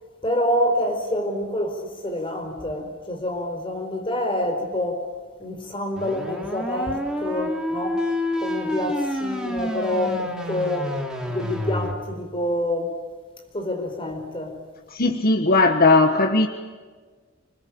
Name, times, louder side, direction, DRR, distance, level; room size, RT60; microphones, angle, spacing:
voice 1, 0.2-5.1 5.4-8.1 8.4-11.0 11.3-13.0 13.5-14.6, left 1 dB, 25° left, 4.6 m, -27 dB
sound 1, 6.0-11.9, left 1 dB, 5° right, 3.0 m, -28 dB
voice 2, 14.9-16.5, left 3 dB, 50° left, 1.4 m, -18 dB
26.5 x 21.0 x 8.7 m
head